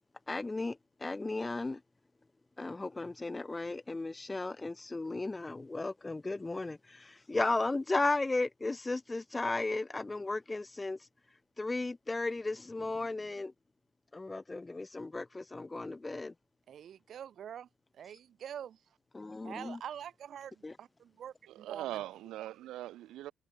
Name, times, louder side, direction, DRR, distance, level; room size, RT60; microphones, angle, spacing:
voice 1, 0.3-1.8 2.6-11.0 11.6-13.5 14.1-16.3 19.1-19.8 20.6-20.7, left 2 dB, 10° left, 1.9 m, -35 dB
voice 2, 16.7-17.7 18.0-18.8 19.4-20.5 20.8-20.9 21.2-22.0, right 9 dB, 45° right, 3.8 m, -44 dB
voice 3, 21.5-23.3, right 14 dB, 80° right, 2.3 m, -41 dB
cardioid pair, 180°, 0 cm